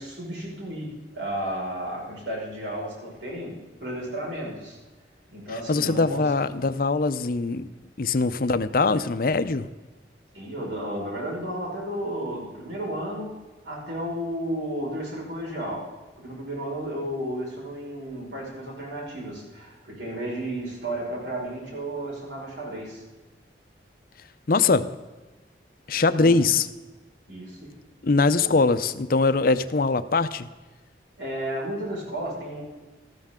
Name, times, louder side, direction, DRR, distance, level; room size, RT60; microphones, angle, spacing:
voice 1, 0.0-4.8 5.3-6.3 10.3-13.4 13.6-15.9 16.2-23.0 26.2-26.4 27.3-27.8 28.5-28.6 31.2-32.6, right 1 dB, 80° right, -3 dB, 5.3 m, -33 dB
voice 2, 5.7-7.7 8.0-9.7 24.5-24.9 25.9-26.7 28.0-30.5, left 3 dB, 55° left, 12 dB, 0.6 m, -22 dB
14.0 x 13.0 x 3.7 m, 1.2 s
head